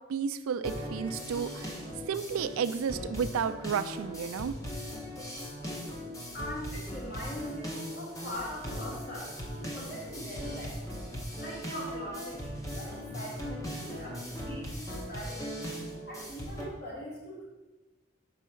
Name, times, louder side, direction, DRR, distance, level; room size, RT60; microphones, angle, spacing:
voice 1, 0.0-1.8 2.1-4.6, right 7 dB, 90° right, 12 dB, 0.4 m, -32 dB
sound 1, 0.6-16.6, equal, 15° left, 0.8 m, -39 dB
voice 2, 6.3-10.9 11.4-15.6 16.0-17.4, equal, 45° left, -5 dB, 2.0 m, -42 dB
4.6 x 4.2 x 5.7 m, 1.1 s
head